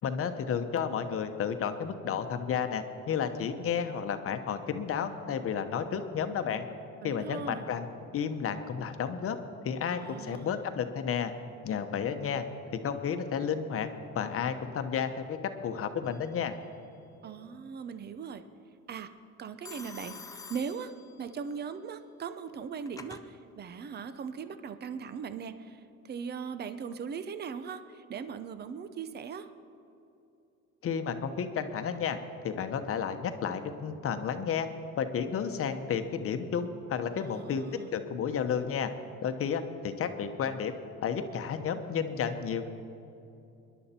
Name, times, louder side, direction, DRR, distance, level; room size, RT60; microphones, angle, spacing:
voice 1, 0.0-6.7 7.0-7.9 8.1-9.4 9.6-11.3 11.6-12.4 12.7-13.9 14.1-15.4 15.6-16.6 30.8-32.2 32.4-34.7 35.0-37.6 37.9-38.9 39.2-40.7 41.0-42.7, left 7 dB, 45° left, 8 dB, 1.0 m, -32 dB
voice 2, 7.0-7.7 9.9-10.6 17.2-18.4 18.9-19.1 19.4-20.2 20.5-20.9 21.2-29.5 37.1-37.9, right 6 dB, 35° right, 11 dB, 0.7 m, -39 dB
Telephone, 16.0-16.6 19.6-21.5 22.5-23.3, left 4 dB, 10° left, 0.7 m, -48 dB
25.0 x 11.0 x 4.4 m, 2.8 s
cardioid pair, 125°, 31 cm